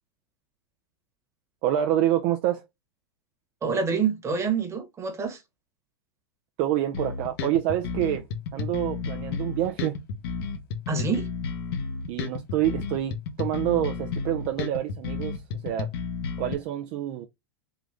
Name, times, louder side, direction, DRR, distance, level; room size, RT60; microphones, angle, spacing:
voice 1, 1.6-2.7 6.6-8.3 8.5-9.9 10.9-11.0 12.1-15.9 16.4-17.3, right 12 dB, 50° right, 0.5 m, -27 dB
voice 2, 3.6-5.4 10.9-11.3, right 5 dB, 20° right, 1.2 m, -27 dB
sound 1, 6.9-16.5, left 5 dB, 65° left, 1.0 m, -32 dB
3.8 x 2.4 x 3.3 m
hypercardioid pair, 125°, 14 cm